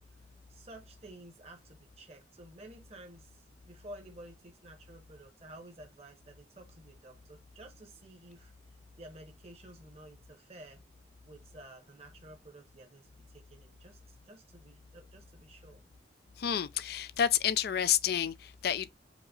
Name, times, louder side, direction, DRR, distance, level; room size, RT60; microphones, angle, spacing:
voice 1, 0.5-8.5 9.0-10.8 11.2-15.8, right 1 dB, 35° right, 0.9 m, -52 dB
voice 2, 16.4-18.9, left 9 dB, 55° left, 0.4 m, -29 dB
5.1 x 2.0 x 3.7 m
head